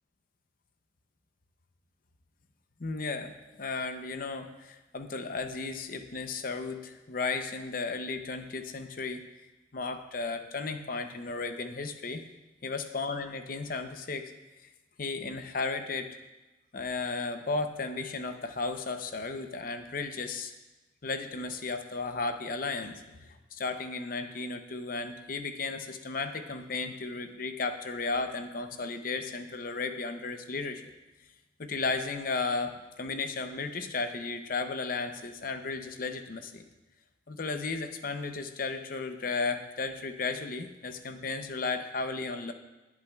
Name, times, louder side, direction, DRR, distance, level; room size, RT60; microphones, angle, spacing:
voice 1, 2.8-3.3 3.6-9.2 9.7-12.2 12.6-14.3 15.0-16.2 16.7-20.5 21.0-23.0 23.5-30.8 31.6-36.6 37.3-42.5, left 4 dB, 50° left, 7 dB, 0.7 m, -34 dB
18.5 x 8.4 x 2.4 m, 1.1 s
head